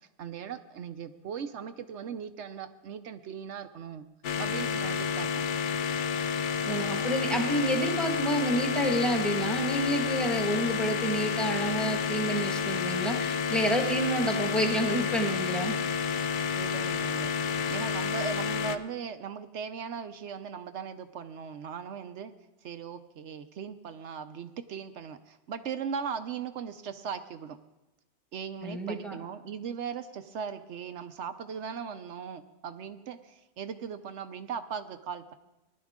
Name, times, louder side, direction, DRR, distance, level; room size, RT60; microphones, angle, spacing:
voice 1, 0.2-4.1 4.4-5.4 16.6-17.3 17.7-22.3 22.6-27.6 28.3-35.3, right 7 dB, 75° right, 9 dB, 1.0 m, -38 dB
sound 1, 4.2-18.8, left 6 dB, 55° left, 0.6 m, -30 dB
voice 2, 6.6-15.8 28.6-29.2, right 1 dB, ahead, 2 dB, 1.5 m, -29 dB
19.0 x 11.5 x 3.7 m, 0.98 s
omnidirectional pair, 1.2 m